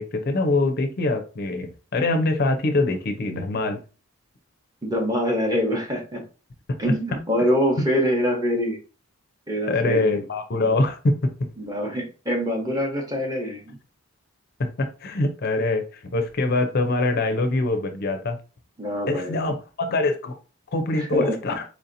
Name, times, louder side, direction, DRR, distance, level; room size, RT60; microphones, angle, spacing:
voice 1, 0.0-3.8 9.7-11.1 14.6-18.4 19.1-20.4 20.7-21.6, left 2 dB, 45° left, 6 dB, 0.5 m, -24 dB
voice 2, 4.8-6.2 6.8-8.8 9.5-10.2 11.6-13.8 18.8-19.4 21.0-21.4, equal, 15° right, 1 dB, 0.8 m, -25 dB
4.3 x 2.7 x 2.6 m, 0.34 s
head